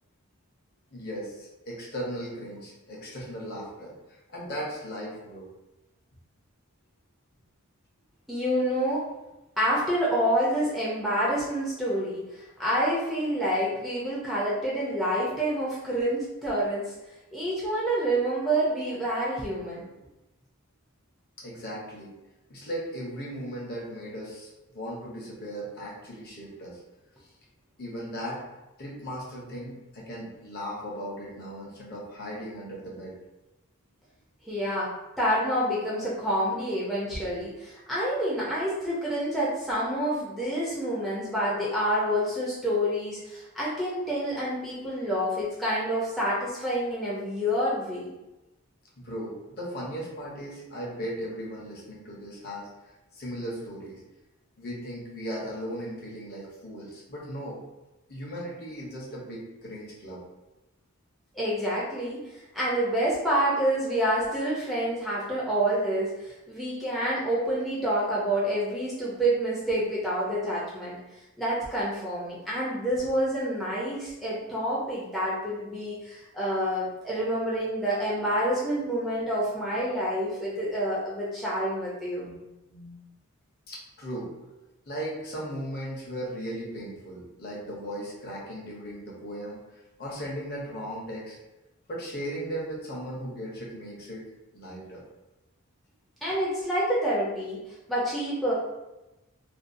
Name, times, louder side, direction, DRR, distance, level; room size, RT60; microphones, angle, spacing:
voice 1, 0.9-5.5 21.4-22.1 22.5-26.8 27.2-27.3 27.8-28.4 28.8-33.1 49.0-54.0 54.6-57.6 58.1-60.2 82.2-83.0 83.7-84.3 84.9-91.4 91.9-94.3 94.5-95.0, equal, 45° left, -3 dB, 0.7 m, -37 dB
voice 2, 8.3-9.1 9.6-16.9 17.3-19.8 34.5-34.9 35.2-48.1 61.3-70.9 71.4-82.3 96.2-97.6 97.9-98.5, right 1 dB, ahead, -8 dB, 0.4 m, -28 dB
2.5 x 2.2 x 2.5 m, 1.0 s
head